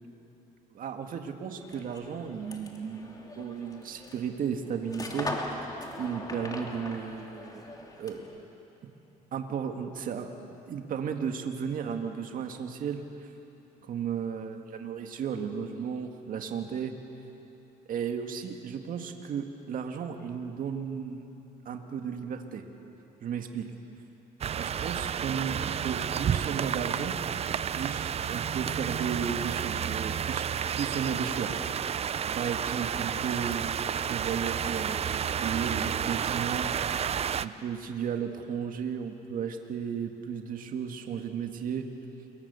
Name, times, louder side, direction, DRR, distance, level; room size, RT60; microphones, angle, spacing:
voice 1, 0.7-5.3 6.0-7.6 8.0-8.3 9.3-13.0 13.9-16.9 17.9-21.3 21.7-22.6 23.2-23.7 24.5-27.2 27.7-30.4 30.7-31.8 32.3-33.8 34.1-36.7 37.4-41.9, right 7 dB, 55° right, 5 dB, 1.9 m, -34 dB
sound 1, 1.6-8.4, left 2 dB, 20° left, 2.9 m, -40 dB
sound 2, 24.4-37.5, right 8 dB, 40° right, 0.6 m, -31 dB
28.0 x 23.0 x 7.0 m, 3.0 s
cardioid pair, 110°, 17 cm